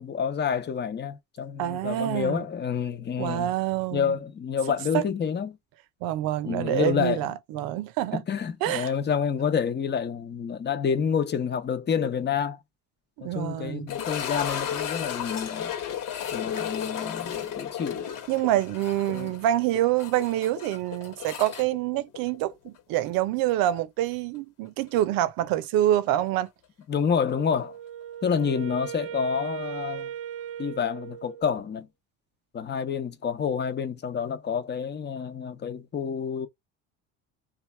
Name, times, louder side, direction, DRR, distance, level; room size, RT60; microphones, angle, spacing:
voice 1, 0.0-3.5 3.9-5.6 6.5-7.2 8.1-12.6 13.2-15.7 16.3-18.0 19.1-19.3 26.9-27.8 28.2-30.1 30.6-31.9 32.5-36.5, left 7 dB, 30° left, 0.8 m, -28 dB
voice 2, 1.6-2.4 3.2-4.2 4.9-5.1 6.0-8.2 8.6-8.9 13.2-13.9 18.3-26.5, right 13 dB, 70° right, 0.7 m, -26 dB
sound 1, 13.9-22.8 23.0-23.1 23.8-23.9 26.5-26.6, left 9 dB, 65° left, 1.2 m, -34 dB
Wind instrument woodwind instrument, 27.3-31.7, right 10 dB, 35° right, 0.6 m, -38 dB
3.2 x 2.4 x 4.4 m
supercardioid pair, 95°, 36 cm